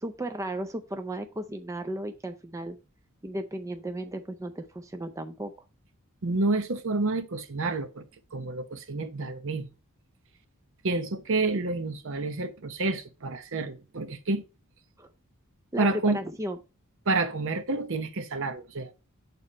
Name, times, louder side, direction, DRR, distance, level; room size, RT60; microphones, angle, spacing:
voice 1, 0.0-2.8 3.2-5.5 15.0-15.1 15.7-16.6, right 1 dB, 15° right, 0.4 m, -35 dB
voice 2, 6.2-8.1 8.3-9.7 10.8-14.4 15.8-16.2 17.1-18.9, right 3 dB, 65° right, 0.8 m, -29 dB
6.9 x 4.2 x 4.4 m
head